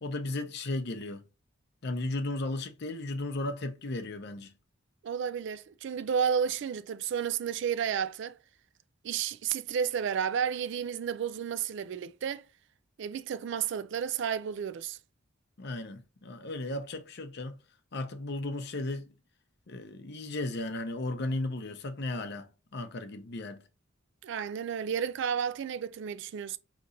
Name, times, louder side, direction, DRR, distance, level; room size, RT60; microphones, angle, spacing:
voice 1, 0.0-1.2 1.8-4.5 15.6-17.6 17.9-19.0 19.7-23.6, left 2 dB, 55° left, 0.7 m, -35 dB
voice 2, 5.0-8.4 9.0-12.4 13.0-15.0 24.2-26.6, right 7 dB, 60° right, 0.3 m, -32 dB
5.0 x 3.0 x 2.6 m
head